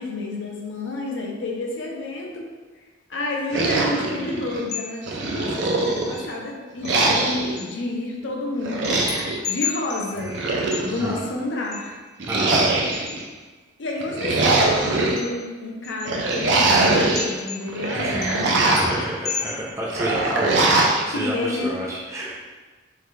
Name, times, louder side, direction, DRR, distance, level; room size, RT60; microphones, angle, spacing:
voice 1, 0.0-2.4 3.1-9.0 9.5-10.4 10.8-12.0 13.8-18.5 21.1-21.7, left 2 dB, 75° left, 0 dB, 0.6 m, -30 dB
sound 1, 3.5-4.6 5.1-6.3 6.8-7.6 8.6-9.4 10.2-11.2 12.2-13.2 14.0-15.2 16.1-17.3 17.7-19.0 19.9-21.0, right 2 dB, 70° right, 0.5 m, -22 dB
sound 2, 3.7-4.2 4.7-5.4 5.8-6.5 6.8-7.7 8.8-11.2 11.6-13.4 14.8-15.5 15.8-16.8 17.2-17.9 18.2-19.7, left 7 dB, 35° left, 0.4 m, -35 dB
voice 2, 12.3-12.8 17.9-18.2 18.8-22.4, right 1 dB, 15° right, -4 dB, 0.5 m, -30 dB
3.6 x 2.2 x 3.2 m, 1.3 s
head